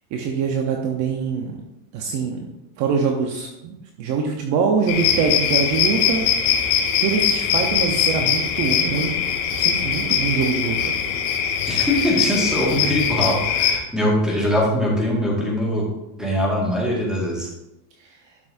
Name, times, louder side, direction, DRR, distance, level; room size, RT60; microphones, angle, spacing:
voice 1, 0.1-1.6 1.9-2.4 2.8-6.5 7.0-9.2 9.5-10.9, right 5 dB, 40° right, 2 dB, 0.9 m, -24 dB
sound 1, 4.9-13.8, left 8 dB, 60° left, 1.6 m, -21 dB
voice 2, 11.7-17.5, equal, ahead, -4 dB, 1.8 m, -22 dB
12.0 x 6.1 x 2.6 m, 0.89 s
supercardioid pair, 165°, 45 cm